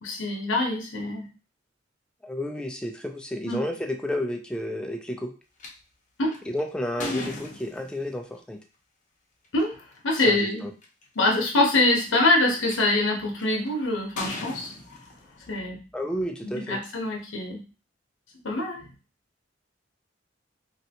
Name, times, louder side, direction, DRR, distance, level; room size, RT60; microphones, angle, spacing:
voice 1, 0.0-1.3 3.4-3.7 6.2-6.4 7.0-7.3 9.5-9.7 10.0-10.7 11.2-14.7 15.5-15.8 16.4-17.6 18.4-18.8, left 2 dB, 85° left, 1 dB, 0.8 m, -24 dB
voice 2, 2.2-5.3 6.5-8.6 10.2-10.7 15.9-16.8, left 1 dB, 5° left, 3 dB, 0.4 m, -31 dB
sound 1, 5.6-5.7 6.3-8.2 9.4-9.6 10.3-10.4 10.6-11.0 11.8-12.7 13.4-13.7 14.2-15.6, left 2 dB, 45° left, 0.7 m, -38 dB
3.2 x 2.6 x 2.8 m, 0.34 s
head